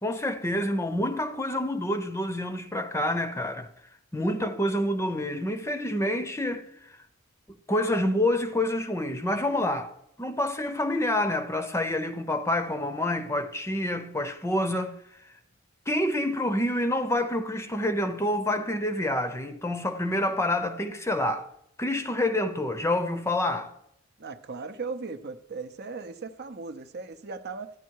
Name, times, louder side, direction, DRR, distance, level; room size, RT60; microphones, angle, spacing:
voice 1, 0.0-3.7 4.1-7.0 7.7-14.9 15.9-21.5 21.8-23.7, left 1 dB, 10° left, 0.7 m, -27 dB
voice 2, 24.2-27.7, right 4 dB, 50° right, 0.8 m, -37 dB
13.5 x 10.0 x 4.7 m
head